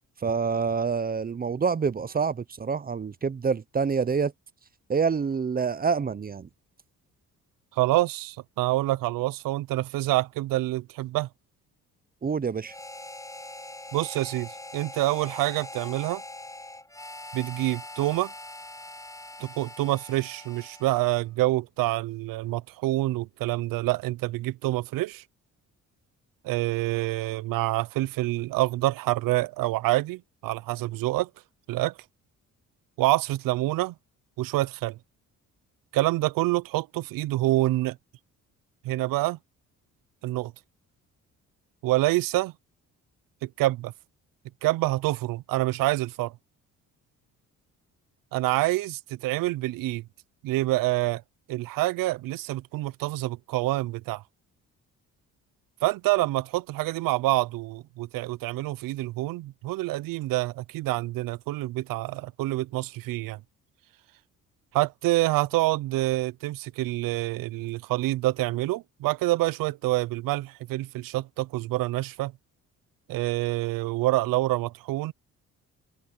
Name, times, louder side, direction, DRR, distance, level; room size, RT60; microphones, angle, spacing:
voice 1, 0.2-4.3 4.9-6.5 12.2-12.7, right 5 dB, 25° right, 0.7 m, -27 dB
voice 2, 7.7-11.3 13.9-16.2 17.3-18.3 19.4-25.2 26.4-31.3 31.7-31.9 33.0-33.9 34.4-35.0 35.9-38.0 38.8-39.4 40.2-40.5 41.8-42.5 43.4-43.9 44.6-46.3 48.3-50.0 50.4-51.2 51.5-54.2 55.8-63.4 64.7-72.3 73.1-75.1, right 18 dB, 80° right, 0.6 m, -27 dB
Harmonica, 12.7-21.3, left 1 dB, 10° left, 7.1 m, -42 dB
cardioid pair, 90°, 33 cm